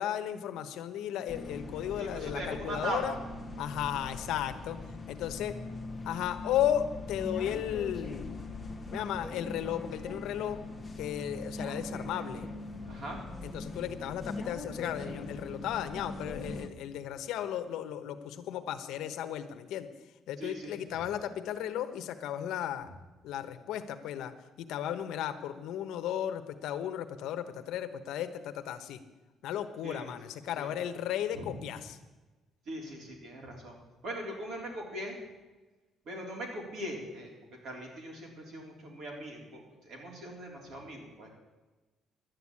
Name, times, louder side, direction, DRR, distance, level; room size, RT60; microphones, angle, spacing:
voice 1, 0.0-3.2 3.6-4.8 5.1-5.5 6.0-8.4 8.9-10.6 11.0-12.5 13.4-19.9 20.3-22.9 23.2-24.3 24.6-29.0 29.4-32.0, left 10 dB, 80° left, 9 dB, 1.0 m, -35 dB
sound 1, 1.3-16.7, left 2 dB, 5° left, 1.1 m, -41 dB
voice 2, 2.0-3.2 12.8-13.2 20.4-20.8 29.8-30.1 30.6-30.7 31.3-31.7 32.7-33.8 34.0-35.2 36.1-37.3 37.6-41.3, right 1 dB, 55° right, 0 dB, 3.7 m, -40 dB
11.5 x 9.3 x 8.5 m, 1.2 s
cardioid pair, 165°, 0 cm